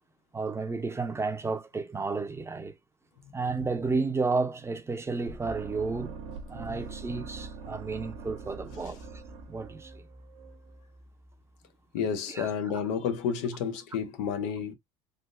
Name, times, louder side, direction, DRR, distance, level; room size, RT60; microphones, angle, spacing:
voice 1, 0.3-2.8 3.3-6.2 6.5-9.0 9.5-9.9 12.3-12.8, right 4 dB, 15° right, 0.6 m, -32 dB
sound 1, 5.3-11.3, right 4 dB, 85° right, 1.0 m, -43 dB
voice 2, 11.9-14.7, left 7 dB, 85° left, 0.8 m, -30 dB
3.5 x 2.5 x 2.4 m
supercardioid pair, 95°, 15 cm